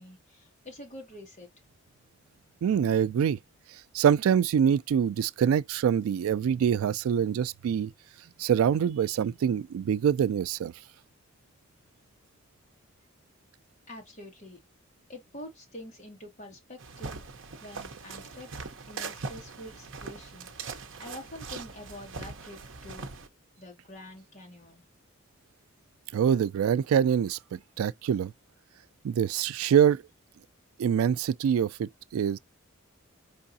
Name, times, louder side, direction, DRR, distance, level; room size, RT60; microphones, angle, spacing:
voice 1, 0.0-1.5 13.9-14.6 15.1-17.2 17.6-18.5 18.9-23.1 23.6-24.8, left 1 dB, 35° left, 1.7 m, -46 dB
voice 2, 2.6-3.4 3.9-7.9 8.4-10.7 26.1-28.3 29.0-30.0 30.8-32.4, right 8 dB, 85° right, 0.3 m, -25 dB
sound 1, 16.8-23.3, right 4 dB, 65° right, 0.7 m, -41 dB
4.7 x 3.4 x 2.7 m
head